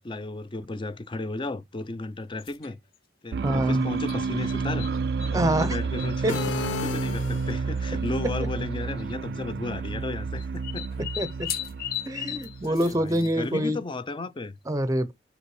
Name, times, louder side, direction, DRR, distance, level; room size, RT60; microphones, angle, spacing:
voice 1, 0.0-2.8 3.2-4.9 5.3-6.4 6.8-11.1 12.1-12.2 12.6-14.6, left 2 dB, 30° left, 0.6 m, -34 dB
sound 1, 2.4-2.7 4.1-5.3 5.6-6.6 7.5-7.6 7.8-7.9 8.8-9.1 10.4-13.6, left 11 dB, 55° left, 0.8 m, -36 dB
sound 2, 3.3-12.9, right 4 dB, 65° right, 0.3 m, -30 dB
voice 2, 3.4-3.8 5.3-5.8 6.2-6.3 11.2-11.3 12.1-13.8 14.7-15.1, right 1 dB, 20° right, 0.6 m, -25 dB
sound 3, 6.3-7.9, left 7 dB, 85° left, 0.3 m, -33 dB
5.4 x 4.1 x 4.8 m
head